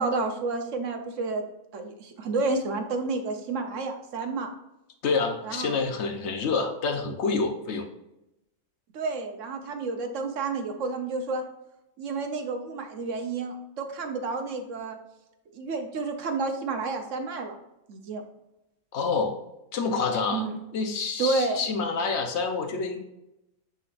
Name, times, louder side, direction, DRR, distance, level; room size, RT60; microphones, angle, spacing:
voice 1, 0.0-1.4 1.7-4.5 5.4-5.8 8.9-11.4 12.0-15.0 15.5-17.6 17.9-18.2 20.3-20.5 21.2-21.6, right 3 dB, 65° right, 5 dB, 1.1 m, -30 dB
voice 2, 5.0-7.9 18.9-19.4 19.7-20.5 20.7-23.0, left 4 dB, 55° left, 5 dB, 1.0 m, -27 dB
9.6 x 3.9 x 2.5 m, 0.91 s
omnidirectional pair, 1.5 m